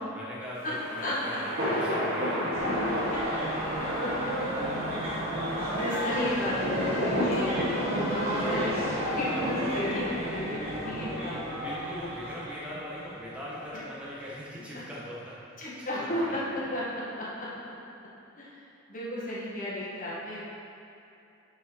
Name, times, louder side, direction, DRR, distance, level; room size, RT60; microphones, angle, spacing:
voice 1, 0.0-3.1 11.1-15.4 15.9-16.6, equal, 5° right, -8 dB, 1.6 m, -41 dB
sound 1, 0.5-11.0, equal, 45° right, 1.7 m, -31 dB
sound 2, 2.5-14.0 14.2-14.3, equal, 25° right, 2.0 m, -35 dB
voice 2, 3.8-4.1 5.7-7.5 7.9-8.8 9.1-12.1 15.6-16.4 16.7-17.5 18.4-18.6 18.9-20.4, left 1 dB, 40° left, -8 dB, 1.8 m, -33 dB
9.3 x 4.9 x 4.8 m, 2.8 s
head